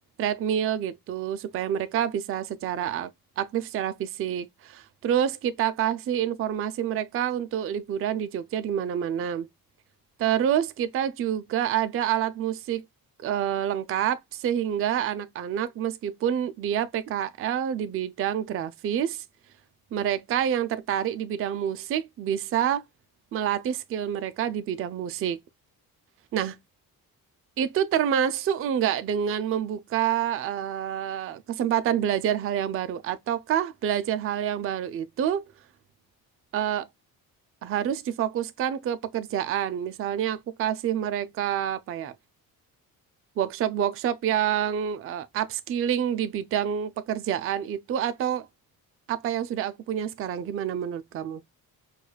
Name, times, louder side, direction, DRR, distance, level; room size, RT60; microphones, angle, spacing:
voice 1, 0.2-3.1 3.4-9.5 10.2-12.8 13.2-19.2 19.9-22.8 23.3-25.4 26.3-26.6 27.6-35.4 36.5-36.9 37.6-42.1 43.4-48.5 49.1-51.4, right 10 dB, 40° right, 0.4 m, -27 dB
4.7 x 2.4 x 2.2 m
cardioid pair, 110°, 37 cm